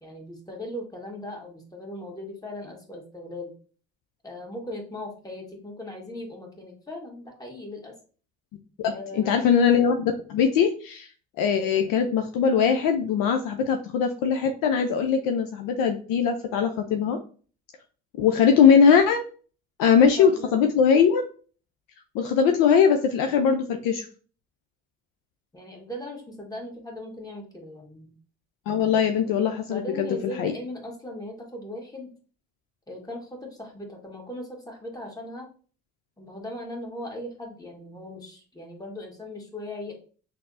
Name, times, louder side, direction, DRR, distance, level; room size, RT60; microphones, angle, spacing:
voice 1, 0.0-3.5 4.2-7.9 8.8-9.5 20.1-20.5 25.5-28.1 29.7-32.1 32.9-35.5 36.2-39.9, left 1 dB, 10° left, 0 dB, 1.5 m, -38 dB
voice 2, 8.8-11.1 11.4-17.2 18.2-19.2 19.8-21.2 22.1-24.1 28.7-30.1 30.4-30.5, left 7 dB, 55° left, 5 dB, 0.5 m, -21 dB
5.8 x 2.1 x 2.5 m, 0.40 s
figure-of-eight pair, 45°, 40 cm